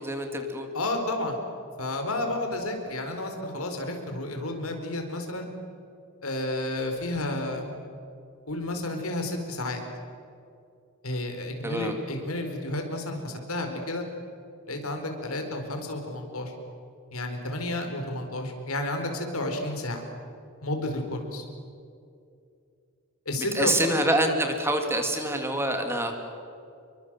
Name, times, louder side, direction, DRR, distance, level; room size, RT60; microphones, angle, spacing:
voice 1, 0.0-0.7 11.6-11.9 23.5-26.1, right 1 dB, 10° right, 4 dB, 2.7 m, -26 dB
voice 2, 0.7-1.4 1.8-5.5 6.2-7.7 8.5-9.8 11.0-14.0 14.7-16.5 17.1-20.0 20.6-21.4 23.3-23.7, left 1 dB, 80° left, 4 dB, 4.5 m, -31 dB
28.0 x 23.5 x 7.6 m, 2.5 s
head